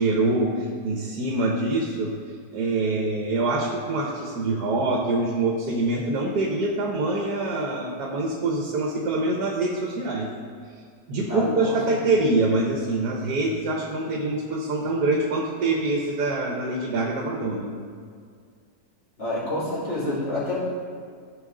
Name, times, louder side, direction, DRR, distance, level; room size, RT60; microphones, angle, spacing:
voice 1, 0.0-2.1 2.5-10.3 11.1-17.7, right 2 dB, 75° right, 0 dB, 1.5 m, -25 dB
voice 2, 11.2-11.9 19.2-20.6, left 2 dB, 35° left, -10 dB, 3.2 m, -28 dB
15.0 x 5.5 x 3.8 m, 2.1 s
omnidirectional pair, 1.8 m